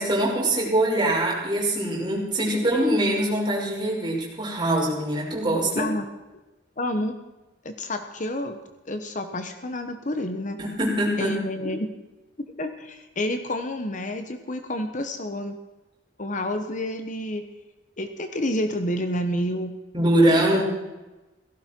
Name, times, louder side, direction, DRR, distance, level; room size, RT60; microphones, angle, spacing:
voice 1, 0.0-5.9 10.6-11.3 19.9-20.6, right 1 dB, 25° right, -3 dB, 5.8 m, -23 dB
voice 2, 5.7-6.0 6.8-7.2 7.6-8.6 8.9-10.6 11.2-11.9 12.6-15.6 16.2-17.4 18.0-19.8 20.3-20.6, left 1 dB, 45° left, 7 dB, 1.2 m, -29 dB
17.5 x 15.5 x 4.6 m, 1.1 s
head